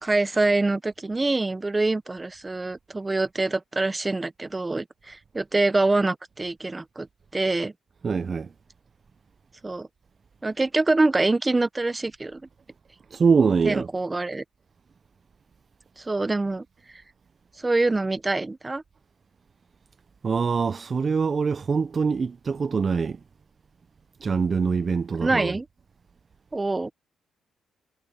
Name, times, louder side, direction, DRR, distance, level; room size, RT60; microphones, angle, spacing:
voice 1, 0.0-7.1 7.3-7.7 9.6-9.9 10.4-12.4 13.6-14.4 16.0-16.6 17.6-18.8 25.2-25.6 26.5-26.9, right 2 dB, 20° right, 0.9 m, -25 dB
voice 2, 8.0-8.5 13.1-13.9 20.2-23.2 24.2-25.6, right 5 dB, 40° right, 0.5 m, -24 dB
cardioid pair, 90°, 0 cm